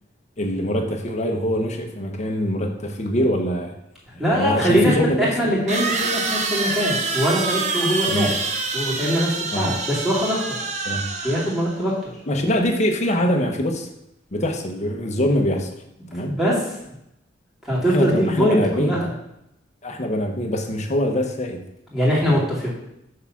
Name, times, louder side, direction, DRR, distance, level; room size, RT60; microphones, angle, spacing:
voice 1, 0.4-3.7 4.1-5.5 8.1-8.3 9.5-9.7 10.8-11.0 12.3-13.9 14.3-15.7 16.1-16.4 17.9-19.0 19.8-21.6 22.2-22.4, equal, 40° left, 3 dB, 0.9 m, -23 dB
sound 1, 4.1-4.2 5.7-11.8, right 4 dB, 40° right, 0.8 m, -26 dB
voice 2, 4.2-8.3 8.7-10.6 11.2-12.1 16.2-16.6 17.7-19.1 21.9-22.7, equal, ahead, -7 dB, 2.6 m, -22 dB
6.5 x 3.6 x 5.8 m, 0.80 s
head